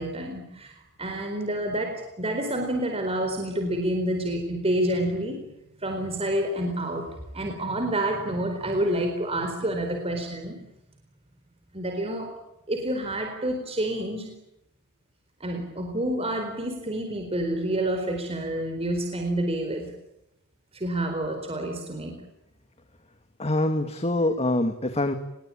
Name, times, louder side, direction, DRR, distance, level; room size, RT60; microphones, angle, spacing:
voice 1, 0.0-10.6 11.7-12.4 12.7-14.4 15.4-19.9 20.7-22.2, right 1 dB, 25° right, 4 dB, 4.3 m, -28 dB
voice 2, 23.4-25.2, left 1 dB, 30° left, 8 dB, 2.0 m, -24 dB
27.5 x 22.0 x 8.8 m, 0.84 s
head